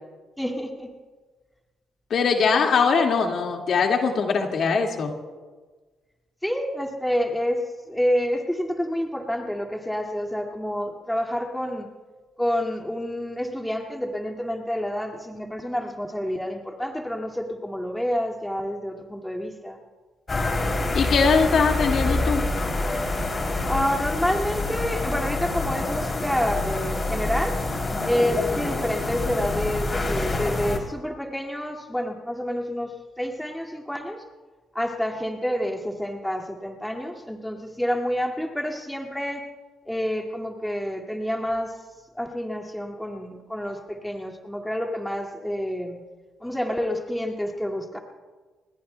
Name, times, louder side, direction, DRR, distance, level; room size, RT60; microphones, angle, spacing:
voice 1, 0.4-0.9 6.4-7.6 7.9-11.9 12.4-19.8 23.7-27.6 28.0-34.2 34.7-39.4 39.9-41.7 42.1-46.0 46.4-48.0, equal, 5° left, 1 dB, 2.2 m, -28 dB
voice 2, 2.1-5.1 20.9-22.4, left 5 dB, 60° left, 2 dB, 2.1 m, -21 dB
sound 1, 20.3-30.8, left 2 dB, 30° left, 3.2 m, -26 dB
29.0 x 21.0 x 2.3 m, 1.3 s
cardioid pair, 90°, 0 cm